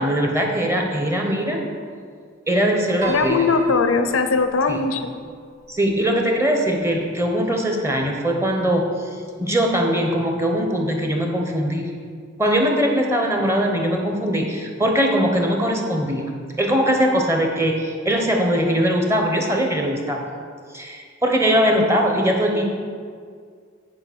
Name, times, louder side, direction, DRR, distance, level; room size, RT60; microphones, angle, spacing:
voice 1, 0.0-1.6 2.5-3.4 4.7-4.8 5.7-8.9 9.4-11.9 12.4-20.2 20.7-22.6, equal, 15° right, 1 dB, 0.9 m, -21 dB
Piano, 3.0-7.4, right 3 dB, 70° right, 1.5 m, -37 dB
voice 2, 3.1-5.1, left 4 dB, 90° left, 9 dB, 0.6 m, -20 dB
8.8 x 4.9 x 6.1 m, 2.1 s
head